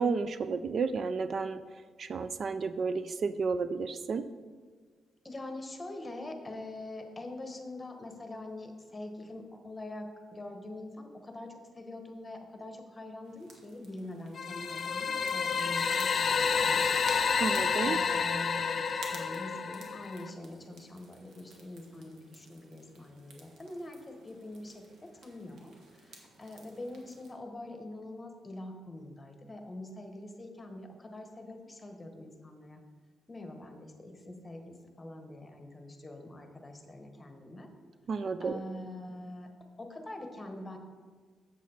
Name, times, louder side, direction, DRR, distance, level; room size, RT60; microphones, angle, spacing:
voice 1, 0.0-1.6 2.0-4.2 17.4-18.0 38.1-38.6, right 4 dB, 50° right, 12 dB, 0.3 m, -31 dB
voice 2, 5.2-17.0 17.8-32.8 33.3-37.7 38.4-39.5 39.8-40.8, left 1 dB, 20° left, 4 dB, 1.1 m, -44 dB
sound 1, 13.2-27.3, right 3 dB, 75° right, 1.4 m, -53 dB
sound 2, 14.4-20.3, left 6 dB, 50° left, 0.5 m, -29 dB
7.4 x 7.3 x 4.3 m, 1.5 s
cardioid pair, 110°, 0 cm